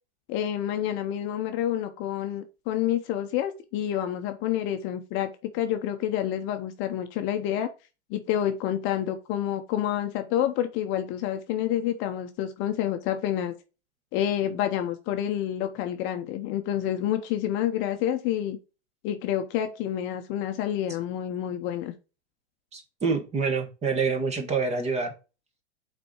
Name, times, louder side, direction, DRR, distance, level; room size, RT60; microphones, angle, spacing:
voice 1, 0.3-7.7 8.1-13.5 14.1-18.6 19.0-21.9, left 11 dB, 35° left, 0.8 m, -28 dB
voice 2, 22.7-25.1, right 4 dB, 20° right, 1.3 m, -27 dB
6.0 x 4.3 x 4.7 m
hypercardioid pair, 130°, 35 cm